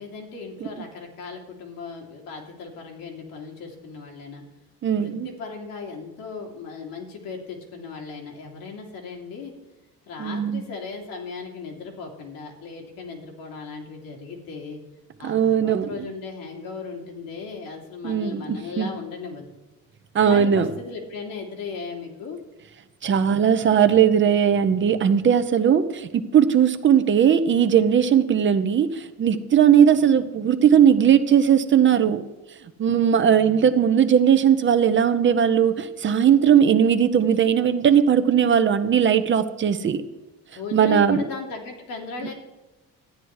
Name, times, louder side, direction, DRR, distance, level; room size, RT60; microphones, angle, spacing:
voice 1, 0.0-4.4 4.9-9.5 10.1-14.8 15.2-19.5 20.2-22.4 33.2-33.8 40.5-42.3, left 5 dB, 80° left, 1 dB, 2.9 m, -37 dB
voice 2, 4.8-5.3 10.2-10.6 15.2-16.0 18.0-18.9 20.1-20.7 23.0-32.2 32.8-40.0 40.7-41.2, right 8 dB, 35° right, 10 dB, 0.8 m, -18 dB
12.5 x 9.5 x 4.8 m, 1.1 s
cardioid pair, 135°, 34 cm